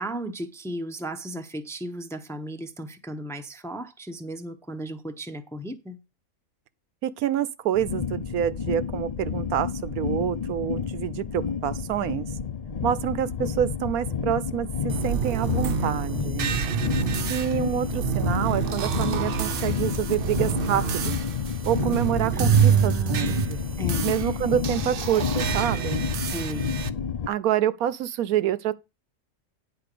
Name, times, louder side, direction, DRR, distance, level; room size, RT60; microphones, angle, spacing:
voice 1, 0.0-6.0 22.3-23.5 23.8-24.2 26.2-26.7, right 1 dB, 5° left, 0.7 m, -35 dB
voice 2, 7.0-12.3 12.8-16.5 17.3-21.2 21.7-23.6 24.0-26.1 27.3-28.7, right 10 dB, 85° right, 1.2 m, -27 dB
sound 1, 7.7-27.3, left 6 dB, 45° left, 0.5 m, -30 dB
sound 2, 14.9-26.9, right 9 dB, 55° right, 0.6 m, -27 dB
9.8 x 4.5 x 6.7 m
omnidirectional pair, 1.5 m